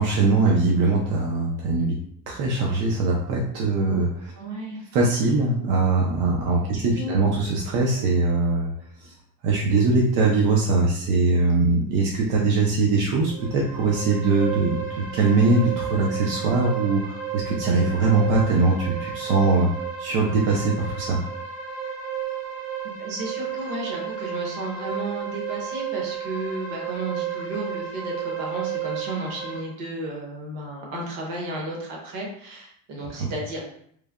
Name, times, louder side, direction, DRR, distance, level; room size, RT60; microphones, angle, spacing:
voice 1, 0.0-2.0 2.3-4.3 4.9-8.7 9.0-9.1 9.4-14.8 15.1-19.7 20.0-21.2, right 3 dB, 85° right, -2 dB, 0.6 m, -21 dB
voice 2, 4.3-4.9 6.7-7.2 23.0-33.6, right 1 dB, 60° right, -2 dB, 1.0 m, -33 dB
sound 1, 13.3-29.6, right 9 dB, 10° right, 0.4 m, -32 dB
3.2 x 2.1 x 2.3 m, 0.66 s
cardioid pair, 170°, 36 cm